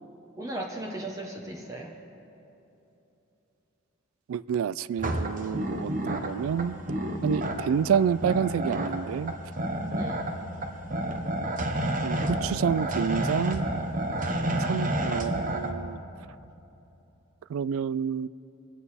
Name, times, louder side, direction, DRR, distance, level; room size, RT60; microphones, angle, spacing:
voice 1, 0.4-1.9 9.8-10.2 14.3-15.1, right 1 dB, 15° right, -1 dB, 0.9 m, -36 dB
voice 2, 4.3-6.8 7.2-9.3 12.0-13.7 14.6-16.0 17.5-18.3, right 7 dB, 85° right, 18 dB, 0.3 m, -28 dB
sound 1, 5.0-15.7, right 1 dB, 40° right, 0.9 m, -30 dB
23.0 x 9.1 x 4.2 m, 2.9 s
head